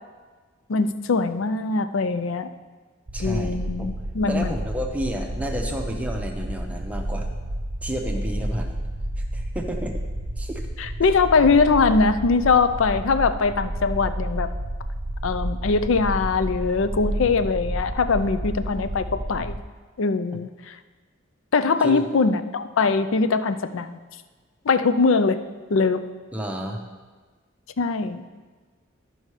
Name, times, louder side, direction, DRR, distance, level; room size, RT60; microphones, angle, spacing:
voice 1, 0.7-2.5 3.2-4.5 10.8-14.5 15.2-19.5 20.0-20.7 21.5-24.0 24.7-25.4 25.7-26.0 27.8-28.2, left 4 dB, 75° left, 12 dB, 0.5 m, -22 dB
voice 2, 3.1-3.9 4.3-7.3 7.8-8.7 9.3-10.0 10.4-10.6 21.8-22.0 26.3-26.8, right 1 dB, 5° right, 2 dB, 0.7 m, -31 dB
sound 1, 3.1-19.6, right 1 dB, 45° right, 0.8 m, -30 dB
12.5 x 5.4 x 4.8 m, 1.4 s
head